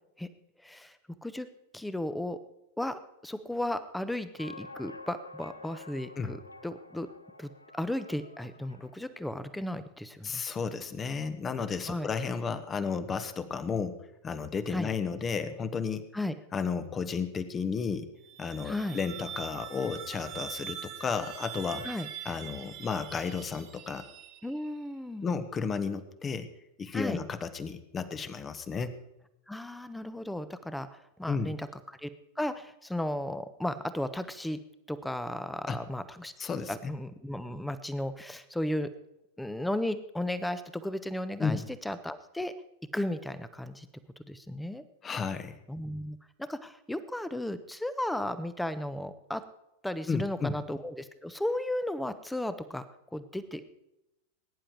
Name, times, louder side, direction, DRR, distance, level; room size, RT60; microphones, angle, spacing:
voice 1, 0.6-1.0 1.2-1.5 1.7-2.4 2.8-7.1 7.4-10.4 11.9-12.1 14.7-14.9 16.1-16.3 18.6-19.0 21.8-22.1 24.4-25.3 26.9-27.2 29.5-32.1 32.4-34.6 34.9-36.3 36.7-38.9 39.4-42.5 42.9-43.9 44.2-44.8 45.7-49.4 49.8-52.8 53.1-53.6, left 1 dB, 5° left, 13 dB, 1.0 m, -35 dB
sound 1, 4.4-9.2, left 2 dB, 85° left, 0.8 m, -49 dB
voice 2, 10.2-14.0 14.2-16.1 16.5-18.1 18.4-21.9 22.2-24.0 25.2-26.5 26.8-29.0 31.3-31.6 35.7-35.8 36.4-36.9 41.4-41.7 45.0-45.6 50.1-50.6, left 5 dB, 20° left, 11 dB, 1.2 m, -33 dB
sound 2, 18.1-24.8, right 9 dB, 40° right, 1.5 m, -43 dB
20.5 x 10.0 x 4.6 m, 0.88 s
figure-of-eight pair, 90°, 0 cm